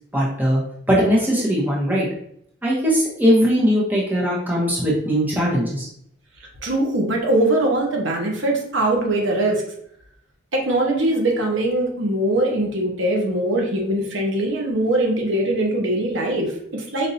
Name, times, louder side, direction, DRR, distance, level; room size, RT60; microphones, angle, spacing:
voice 1, 0.1-0.6 0.9-2.1 2.6-5.9, equal, 10° right, -6 dB, 1.0 m, -19 dB
voice 2, 6.6-9.6 10.5-17.1, right 1 dB, 75° right, 0 dB, 0.9 m, -21 dB
5.1 x 2.7 x 2.7 m, 0.69 s
head